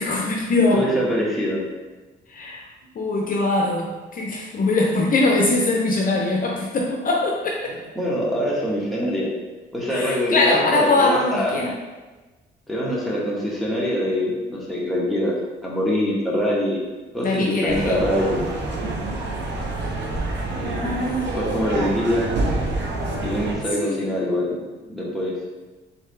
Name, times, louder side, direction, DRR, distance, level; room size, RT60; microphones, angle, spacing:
voice 1, 0.0-0.9 2.3-2.6 2.9-7.8 9.9-11.7 17.2-18.3 20.8-21.3 23.8-24.0, left 2 dB, 45° left, -1 dB, 0.6 m, -22 dB
voice 2, 0.7-1.6 7.9-9.3 9.7-11.6 12.7-15.3 15.6-16.8 17.1-18.4 20.6-22.3 23.2-24.6 24.9-25.4, equal, ahead, -6 dB, 1.3 m, -24 dB
sound 1, 17.7-23.5, right 2 dB, 65° right, 0.9 m, -27 dB
3.9 x 3.5 x 3.3 m, 1.2 s
cardioid pair, 90°, 20 cm